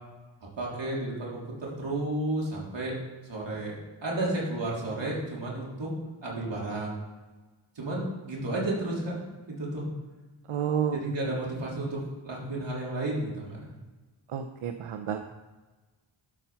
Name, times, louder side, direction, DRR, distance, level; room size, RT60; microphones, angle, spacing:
voice 1, 0.6-2.9 3.3-3.8 4.0-5.9 6.2-7.0 7.8-9.2 9.5-9.9 10.9-13.7, right 1 dB, 60° right, -4 dB, 3.7 m, -32 dB
voice 2, 10.5-11.4 14.3-15.2, right 8 dB, 85° right, 7 dB, 0.7 m, -31 dB
12.0 x 5.7 x 5.7 m, 1.3 s
wide cardioid pair, 135°, 49 cm